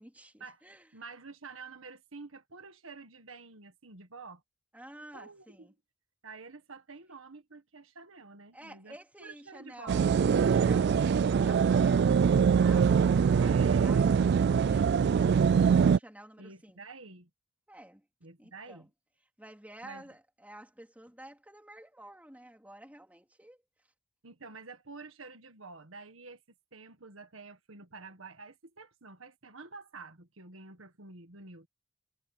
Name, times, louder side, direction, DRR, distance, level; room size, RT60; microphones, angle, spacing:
voice 1, 0.0-0.9 4.7-5.7 8.5-16.8 17.7-18.1 18.4-18.9 19.4-23.6, right 1 dB, 5° right, 3.4 m, -51 dB
voice 2, 0.9-4.4 5.1-5.7 6.2-10.0 13.4-14.3 16.4-17.3 18.2-18.9 19.8-20.0 24.2-26.4 26.7-31.7, right 4 dB, 75° right, 1.7 m, -49 dB
sound 1, 9.9-16.0, right 6 dB, 55° right, 0.3 m, -23 dB
head